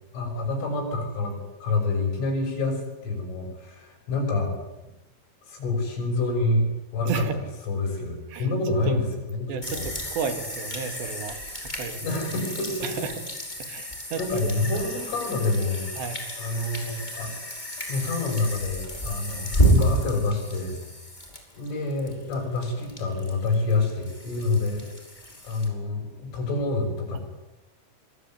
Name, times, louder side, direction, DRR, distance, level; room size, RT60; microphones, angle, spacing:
voice 1, 0.1-4.5 5.5-6.7 6.9-7.2 7.7-9.9 12.0-12.9 14.2-15.9 16.4-17.3 17.9-20.8 21.5-24.8 25.4-27.2, left 3 dB, 85° left, 4 dB, 9.4 m, -27 dB
voice 2, 7.1-7.4 8.3-8.5 8.9-9.0 9.5-11.4 11.8-12.0 12.8-13.1 13.6-14.2 16.0-16.2, right 6 dB, 65° right, 8 dB, 4.3 m, -32 dB
sound 1, 9.6-25.7, right 1 dB, 10° left, 4.8 m, -30 dB
25.5 x 22.0 x 9.5 m, 1.0 s
omnidirectional pair, 5.5 m